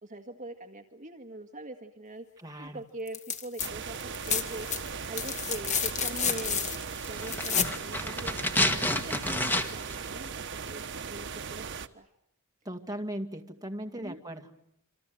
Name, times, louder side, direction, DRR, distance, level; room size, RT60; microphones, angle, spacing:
voice 1, 0.0-2.3 2.6-4.7 5.1-6.7 7.1-12.1 14.0-14.2, right 2 dB, 35° right, 5 dB, 1.8 m, -42 dB
voice 2, 2.4-2.8 12.7-14.5, right 1 dB, 15° right, 5 dB, 2.3 m, -38 dB
sound 1, 3.1-3.7 4.0-7.8 9.4-9.5, left 7 dB, 35° left, 2.0 m, -31 dB
sound 2, 3.6-11.9, right 6 dB, 55° right, 1.3 m, -38 dB
sound 3, 7.1-10.0 10.2-10.3, left 1 dB, 10° left, 1.8 m, -29 dB
28.0 x 26.5 x 7.8 m, 0.74 s
head